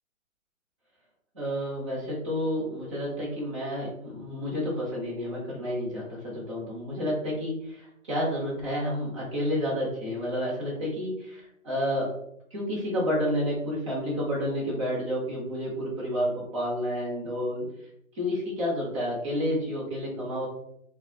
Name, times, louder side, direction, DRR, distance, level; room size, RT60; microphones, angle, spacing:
voice 1, 1.3-12.1 12.5-17.7 18.1-20.5, equal, 20° right, -5 dB, 0.8 m, -30 dB
2.2 x 2.2 x 3.8 m, 0.73 s
hypercardioid pair, 160°, 42 cm